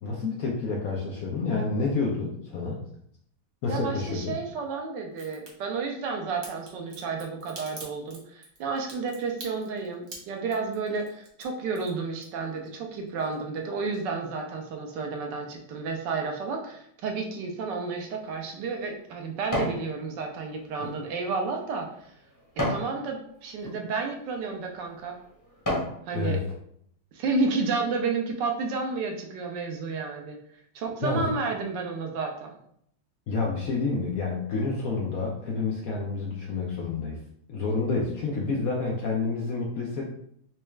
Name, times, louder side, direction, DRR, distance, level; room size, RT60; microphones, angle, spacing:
voice 1, 0.0-2.8 3.6-4.4 26.1-26.4 31.0-31.3 33.3-37.2 37.5-40.1, left 3 dB, 75° left, -2 dB, 0.8 m, -29 dB
voice 2, 3.7-22.1 22.6-25.1 26.1-26.4 27.1-30.4 30.7-32.5, right 4 dB, 70° right, 2 dB, 1.2 m, -31 dB
Crack, 5.1-5.5 6.4-12.7 13.0-13.6 13.9-14.0, right 3 dB, 50° right, 1.0 m, -45 dB
sound 1, 18.0-19.8 20.3-22.9 23.5-23.8 24.5-24.6 25.1-26.0 26.5-26.6, left 1 dB, 15° left, 0.6 m, -33 dB
4.1 x 2.3 x 3.2 m, 0.69 s
omnidirectional pair, 2.2 m